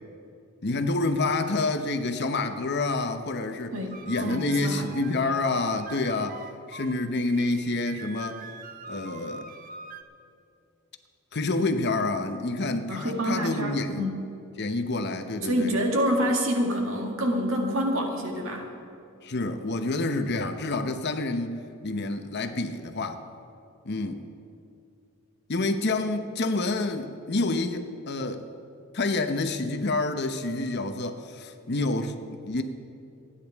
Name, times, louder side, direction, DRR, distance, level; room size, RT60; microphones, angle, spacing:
voice 1, 0.6-3.7 4.1-6.4 6.7-8.4 8.9-9.5 11.3-14.1 14.6-15.7 19.2-23.2 23.8-24.2 25.5-28.5 28.9-32.6, left 2 dB, 50° left, 8 dB, 0.9 m, -28 dB
voice 2, 3.7-4.9 8.9-9.0 12.9-14.2 15.4-18.7, equal, 65° right, 1 dB, 2.0 m, -27 dB
sound 1, 3.9-10.0, right 4 dB, 40° right, 0.7 m, -43 dB
28.5 x 10.0 x 3.6 m, 2.6 s
head